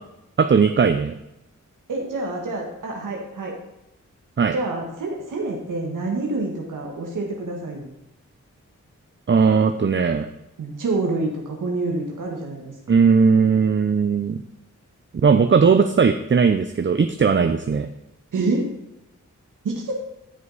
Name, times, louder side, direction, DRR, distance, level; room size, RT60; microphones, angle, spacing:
voice 1, 0.4-1.1 4.4-4.6 9.3-10.3 12.9-14.4 15.2-17.9, right 5 dB, 40° right, 8 dB, 0.6 m, -18 dB
voice 2, 1.9-3.5 4.5-7.9 10.6-12.7 18.3-18.7 19.6-19.9, right 2 dB, 85° right, 0 dB, 1.6 m, -27 dB
14.0 x 5.3 x 4.1 m, 0.88 s
cardioid pair, 55°, 31 cm